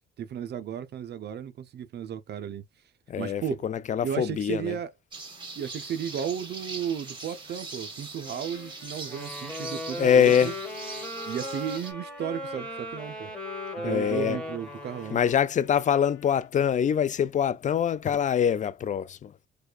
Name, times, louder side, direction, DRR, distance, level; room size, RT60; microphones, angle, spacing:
voice 1, 0.2-2.6 3.2-3.6 4.0-4.9 5.6-10.5 11.3-13.3 13.8-15.2, right 9 dB, 55° right, 0.5 m, -34 dB
voice 2, 3.1-4.8 10.0-10.5 13.8-14.4 15.1-19.3, left 8 dB, 40° left, 0.4 m, -24 dB
sound 1, 5.1-11.9, right 3 dB, 25° right, 1.7 m, -41 dB
Wind instrument woodwind instrument, 8.2-17.2, left 9 dB, 80° left, 0.8 m, -48 dB
Wind instrument woodwind instrument 2, 9.1-15.5, equal, 5° left, 1.4 m, -37 dB
4.7 x 2.2 x 2.3 m
cardioid pair, 90°, 20 cm